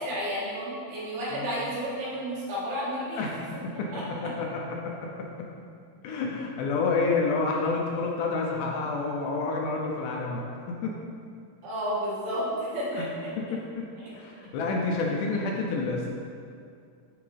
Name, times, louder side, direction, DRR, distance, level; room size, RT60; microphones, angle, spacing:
voice 1, 0.0-3.3 3.9-4.0 11.6-13.6 14.0-14.1, equal, 90° right, -8 dB, 3.5 m, -32 dB
voice 2, 3.2-3.9 4.2-5.5 6.0-10.9 12.9-13.1 13.5-13.9 14.1-16.1, left 3 dB, 80° left, -1 dB, 1.9 m, -29 dB
9.5 x 3.8 x 3.2 m, 2.3 s
omnidirectional pair, 4.0 m